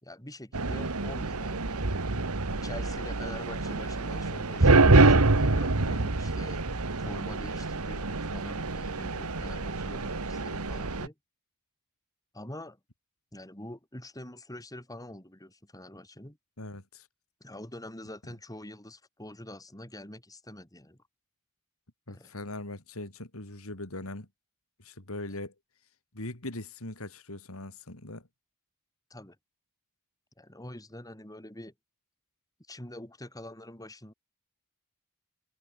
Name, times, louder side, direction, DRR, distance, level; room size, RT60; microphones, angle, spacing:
voice 1, 0.0-2.3 2.6-6.6 7.0-11.1 12.3-12.8 13.3-16.4 17.4-21.0 22.1-22.3 29.1-29.4 30.4-31.7 32.7-34.1, left 1 dB, 15° left, 4.8 m, -45 dB
sound 1, 0.5-11.1, right 3 dB, 75° right, 1.6 m, -26 dB
voice 2, 5.8-6.1 16.6-17.1 22.1-24.3 24.8-25.5 26.1-28.3, left 2 dB, 65° left, 3.8 m, -40 dB
head